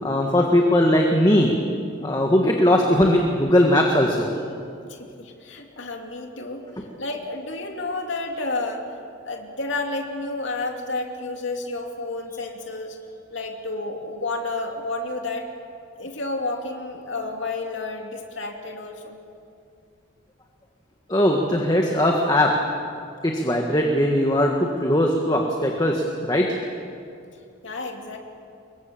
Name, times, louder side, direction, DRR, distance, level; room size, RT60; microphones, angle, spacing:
voice 1, 0.0-1.5 2.0-4.3 21.1-22.5 23.2-26.5, left 1 dB, 20° left, 1 dB, 1.6 m, -19 dB
voice 2, 4.8-6.7 7.0-8.9 9.2-13.0 13.3-15.5 16.0-19.2 27.6-28.2, left 2 dB, 65° left, 2 dB, 2.8 m, -31 dB
25.0 x 22.5 x 7.2 m, 2.4 s
head